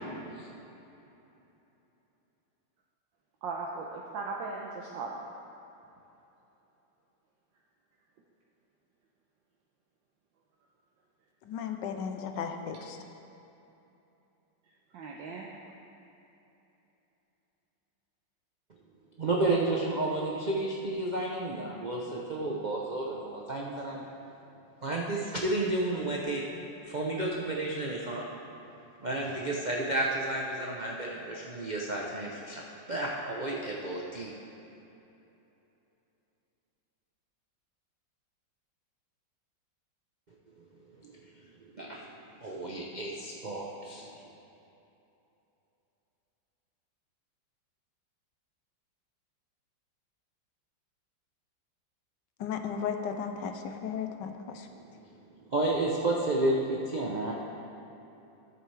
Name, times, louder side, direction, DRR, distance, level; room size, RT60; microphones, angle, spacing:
voice 1, 3.4-5.1 14.9-15.5, right 4 dB, 85° right, -2 dB, 1.5 m, -37 dB
voice 2, 11.5-13.0 52.4-54.7, left 7 dB, 75° left, 6 dB, 1.3 m, -35 dB
voice 3, 19.2-24.0 24.8-26.4 26.9-28.3 29.0-32.6 32.9-34.3 41.0-41.1 41.7-42.1 42.4-44.1 55.5-57.3, right 2 dB, 55° right, -3 dB, 0.5 m, -31 dB
13.5 x 8.1 x 3.3 m, 2.9 s
omnidirectional pair, 2.0 m